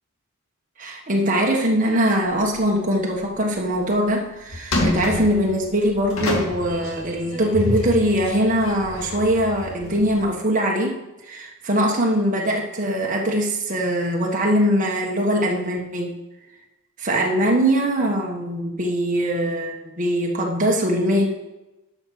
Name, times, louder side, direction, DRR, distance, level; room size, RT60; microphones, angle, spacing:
voice 1, 0.8-16.2 17.0-21.3, equal, 40° right, -1 dB, 1.5 m, -22 dB
sound 1, 2.2-2.7 3.1-3.2 3.7-4.1 4.5-10.2, left 1 dB, 80° left, 2.1 m, -28 dB
11.0 x 6.1 x 6.0 m, 0.99 s
head